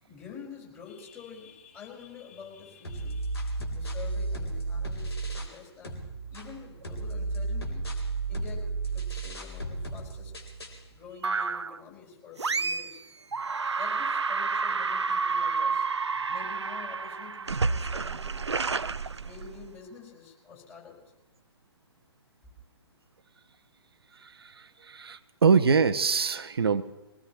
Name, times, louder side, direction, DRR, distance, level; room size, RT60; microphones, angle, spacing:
voice 1, 0.1-7.9 8.3-10.3 10.9-13.0 13.8-15.9 16.3-18.5 19.2-21.0, left 6 dB, 15° left, -3 dB, 4.9 m, -47 dB
sound 1, 2.8-5.6 5.8-10.8, right 3 dB, 70° left, 3.7 m, -33 dB
sound 2, 11.2-11.8 12.4-13.0 13.3-19.8, right 4 dB, 80° right, 0.5 m, -30 dB
voice 2, 24.9-26.8, right 5 dB, 60° right, 9 dB, 0.8 m, -23 dB
23.0 x 19.0 x 3.1 m, 1.1 s
figure-of-eight pair, 120°, 14 cm